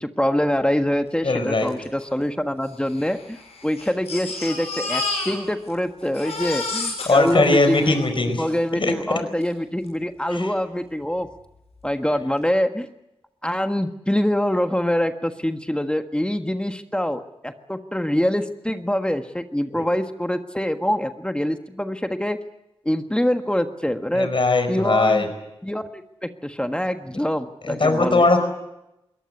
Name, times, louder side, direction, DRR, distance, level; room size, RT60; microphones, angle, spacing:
voice 1, 0.0-8.0 8.2-11.3 11.8-12.9 13.4-22.4 22.8-24.3 24.7-25.3 25.6-28.2, equal, 10° left, 7 dB, 1.5 m, -24 dB
voice 2, 1.2-1.7 7.1-8.4 8.8-9.2 10.3-10.5 19.7-19.8 24.1-25.3 27.6-28.4, left 3 dB, 55° left, 7 dB, 4.8 m, -20 dB
Crying sobbing, 1.7-1.8 2.0-2.1 2.9-5.8 6.0-8.6 9.4-9.5 9.9-10.0, left 3 dB, 90° left, 6.6 m, -31 dB
22.0 x 18.5 x 9.7 m, 0.91 s
cardioid pair, 40°, 10 cm